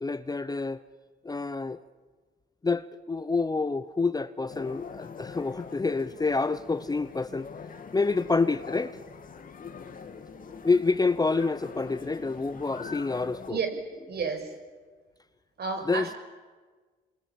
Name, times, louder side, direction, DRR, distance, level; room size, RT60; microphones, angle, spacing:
voice 1, 0.0-0.8 1.2-1.8 2.6-7.5 7.9-9.0 10.6-13.6 15.9-16.1, left 3 dB, 20° left, 0.8 m, -27 dB
sound 1, 4.5-13.5, left 5 dB, 45° left, 2.7 m, -43 dB
voice 2, 14.1-14.5 15.6-16.2, right 5 dB, 55° right, 6.3 m, -31 dB
28.0 x 22.5 x 8.7 m
cardioid pair, 90°, 20 cm